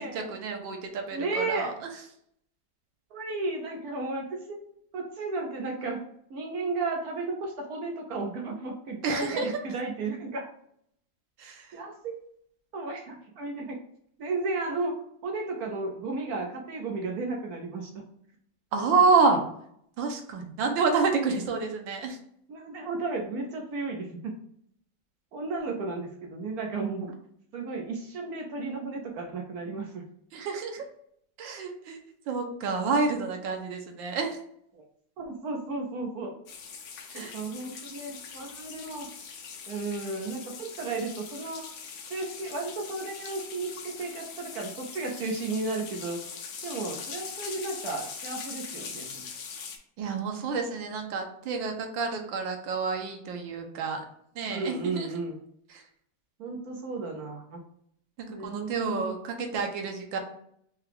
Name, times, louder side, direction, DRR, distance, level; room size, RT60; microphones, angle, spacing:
voice 1, 0.1-1.9 9.0-9.5 11.4-11.8 18.7-19.4 20.0-22.2 30.3-30.8 31.4-32.0 32.3-34.4 37.1-37.4 50.0-54.0 54.3-55.1 55.7-55.8 58.2-60.2, right 4 dB, 85° right, 4 dB, 1.5 m, -28 dB
voice 2, 1.1-1.7 3.1-4.6 4.9-6.0 6.3-10.5 11.7-12.1 12.7-13.8 14.2-18.0 22.5-24.4 25.3-27.1 27.5-30.0 34.7-34.8 35.2-36.3 37.1-39.1 39.7-41.7 42.0-46.2 46.6-49.3 54.5-55.4 56.4-57.6 58.3-59.1, right 3 dB, 65° right, 1 dB, 1.0 m, -34 dB
sound 1, 36.5-49.8, left 6 dB, 80° left, 1.5 m, -42 dB
4.8 x 2.3 x 3.3 m, 0.68 s
omnidirectional pair, 2.1 m